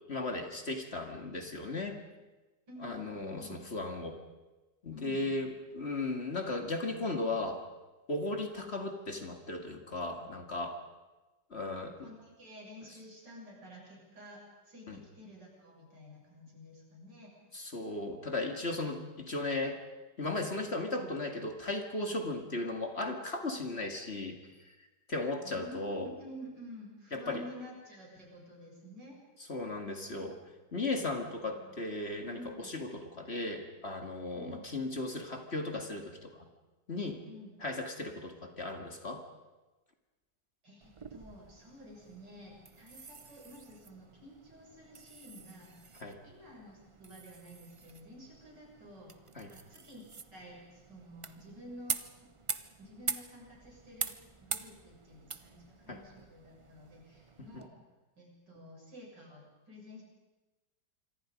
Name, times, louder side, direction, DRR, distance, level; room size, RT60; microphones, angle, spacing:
voice 1, 0.1-2.0 2.8-4.2 4.8-7.6 8.1-10.8 11.5-11.9 14.9-15.0 17.5-19.8 20.2-24.4 24.7-24.8 25.1-26.1 27.1-27.4 29.5-30.4 30.7-36.5 36.9-37.2 37.6-39.2 46.0-46.2 49.4-49.5 55.9-56.0 57.5-57.6, left 2 dB, 35° left, 4 dB, 2.3 m, -36 dB
voice 2, 2.7-3.7 4.9-5.2 11.6-17.3 25.4-29.2 29.8-30.1 31.5-31.8 32.3-32.7 34.3-34.6 37.2-37.5 40.6-45.8 46.2-49.1 49.5-50.0 50.3-52.0 52.8-54.1 54.4-57.7 58.2-60.0, equal, 85° right, -2 dB, 7.7 m, -51 dB
sound 1, 40.8-57.7, right 4 dB, 40° right, 0.4 m, -44 dB
26.5 x 24.0 x 5.2 m, 1.2 s
omnidirectional pair, 1.8 m